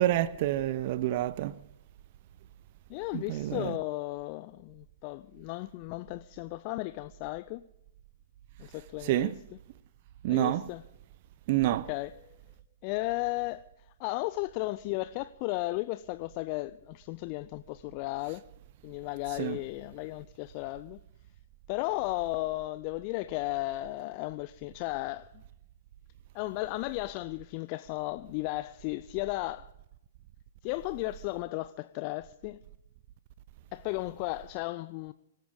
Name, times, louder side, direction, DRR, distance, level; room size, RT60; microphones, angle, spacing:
voice 1, 0.0-1.6 3.1-3.8 9.0-9.4 10.2-10.7 11.5-11.9 19.4-19.6, right 14 dB, 45° right, 0.7 m, -28 dB
voice 2, 2.9-7.7 8.6-9.3 10.3-10.8 11.7-12.4 12.8-13.7 14.0-18.4 18.8-21.0 21.7-25.3 26.3-29.7 30.6-32.6 33.7-35.1, left 20 dB, 40° left, 0.5 m, -35 dB
24.5 x 13.5 x 3.7 m
figure-of-eight pair, 110°, 0 cm